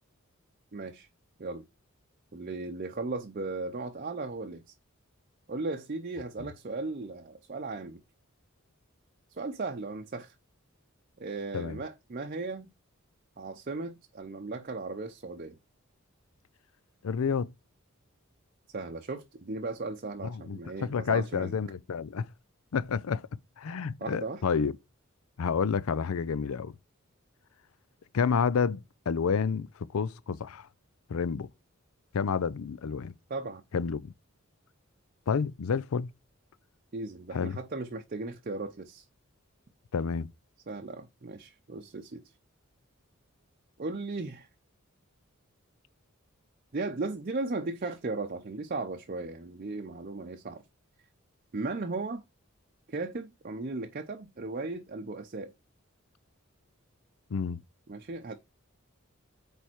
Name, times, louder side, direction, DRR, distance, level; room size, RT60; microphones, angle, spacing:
voice 1, 0.7-1.1 1.4-1.6 2.3-4.7 5.5-8.0 9.3-10.3 11.2-12.7 13.4-15.6 18.7-21.5 24.0-24.4 33.3-33.6 36.9-39.1 40.7-42.2 43.8-44.5 46.7-50.6 51.5-52.2 52.9-55.5 57.9-58.3, right 3 dB, 45° right, 0.6 m, -36 dB
voice 2, 17.0-17.5 20.2-22.3 22.7-23.2 23.6-24.7 25.4-26.7 28.1-29.7 29.9-30.7 31.1-31.5 32.1-33.1 33.7-34.1 35.3-36.1 37.3-37.6 39.9-40.3 57.3-57.6, left 6 dB, 85° left, 0.5 m, -29 dB
8.6 x 3.5 x 4.4 m
head